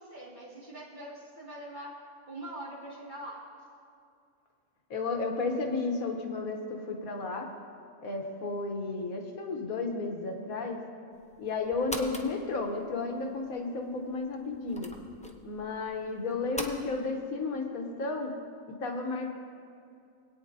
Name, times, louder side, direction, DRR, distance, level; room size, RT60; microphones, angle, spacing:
voice 1, 0.0-1.9 2.3-3.5, right 1 dB, 35° right, -6 dB, 2.3 m, -43 dB
voice 2, 4.9-7.5 8.0-10.8 11.4-14.9 15.4-18.3 18.8-19.3, left 3 dB, 80° left, 3 dB, 1.4 m, -33 dB
sound 1, 11.1-16.8, left 1 dB, 10° left, 0.3 m, -44 dB
20.5 x 9.1 x 2.7 m, 2.4 s
omnidirectional pair, 1.5 m